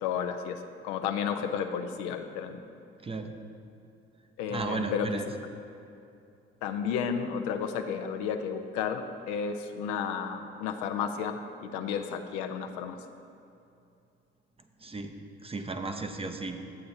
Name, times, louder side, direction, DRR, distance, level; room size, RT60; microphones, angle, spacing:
voice 1, 0.0-2.6 4.4-5.2 6.6-13.0, left 7 dB, 70° left, 6 dB, 0.6 m, -32 dB
voice 2, 4.5-5.3 14.8-15.1 15.4-16.6, right 3 dB, 20° right, 6 dB, 0.7 m, -34 dB
12.5 x 8.6 x 2.7 m, 2.6 s
hypercardioid pair, 50°, 30 cm